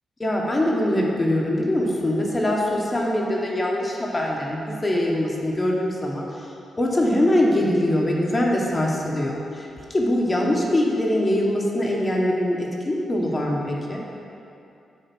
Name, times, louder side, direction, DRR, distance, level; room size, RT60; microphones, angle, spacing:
voice 1, 0.2-6.5 6.8-14.0, left 1 dB, 30° left, -2 dB, 1.1 m, -23 dB
6.8 x 3.6 x 6.0 m, 2.6 s
cardioid pair, 60°, 0 cm